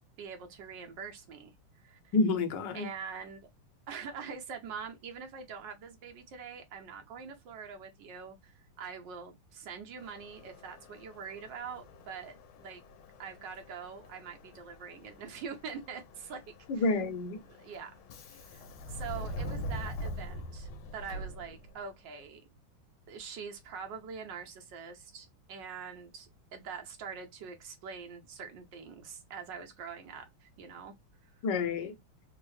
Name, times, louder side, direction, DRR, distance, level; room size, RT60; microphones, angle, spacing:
voice 1, 0.2-2.1 2.7-3.5 3.9-12.8 13.2-16.4 16.7-16.9 17.5-17.9 18.3-22.4 23.1-30.9 31.2-31.3, right 6 dB, 65° right, 1.4 m, -44 dB
voice 2, 2.1-2.9 16.7-17.4 31.4-32.0, left 3 dB, 65° left, 1.3 m, -29 dB
Subway metro underground, 10.0-21.9, equal, 85° left, 1.5 m, -44 dB
3.7 x 2.0 x 3.1 m
omnidirectional pair, 2.2 m